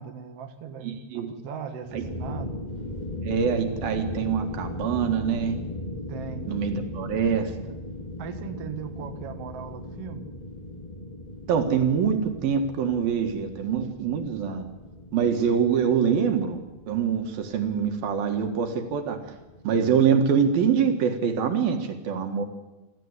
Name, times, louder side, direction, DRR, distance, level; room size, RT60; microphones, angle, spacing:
voice 1, 0.0-2.6 6.1-6.5 8.2-10.3, right 7 dB, 55° right, 6 dB, 2.0 m, -38 dB
voice 2, 0.8-1.3 1.9-2.0 3.2-5.6 6.5-7.5 11.5-14.7 15.1-16.6 16.9-19.2 19.6-22.4, right 7 dB, 70° right, 5 dB, 3.5 m, -24 dB
sound 1, 1.8-20.6, left 1 dB, 20° left, 1.4 m, -38 dB
26.0 x 15.0 x 8.2 m, 1.1 s
omnidirectional pair, 4.3 m